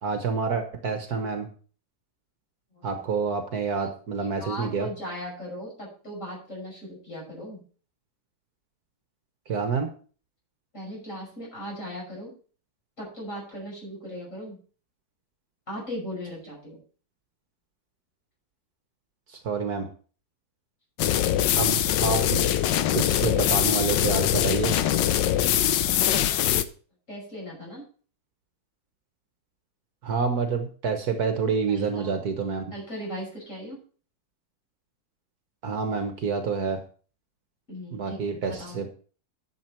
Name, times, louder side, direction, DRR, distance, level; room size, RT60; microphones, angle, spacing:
voice 1, 0.0-1.5 2.8-4.9 9.5-9.9 19.3-19.9 21.6-22.4 22.9-24.7 30.0-32.6 35.6-36.8 37.9-38.9, right 5 dB, 60° right, 6 dB, 1.6 m, -28 dB
voice 2, 4.4-7.6 10.7-12.3 13.0-14.6 15.7-16.8 27.1-27.8 31.7-32.1 32.7-33.8 37.7-38.8, equal, 40° left, -2 dB, 6.3 m, -38 dB
sound 1, 21.0-26.6, left 11 dB, 80° left, 1.4 m, -23 dB
10.5 x 7.1 x 4.5 m, 0.40 s
omnidirectional pair, 2.0 m